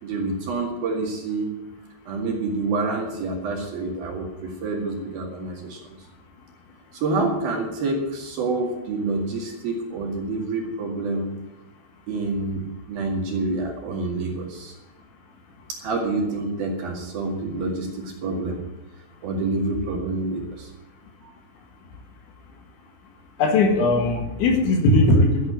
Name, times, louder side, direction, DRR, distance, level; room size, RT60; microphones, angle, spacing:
voice 1, 0.0-1.5 2.1-5.9 7.0-11.3 12.1-14.7 15.7-18.6 19.2-20.7 21.2-21.3, right 3 dB, 55° right, 0 dB, 3.4 m, -27 dB
voice 2, 23.4-25.5, left 2 dB, 70° left, 4 dB, 3.8 m, -19 dB
13.5 x 9.4 x 8.2 m, 1.0 s
omnidirectional pair, 5.9 m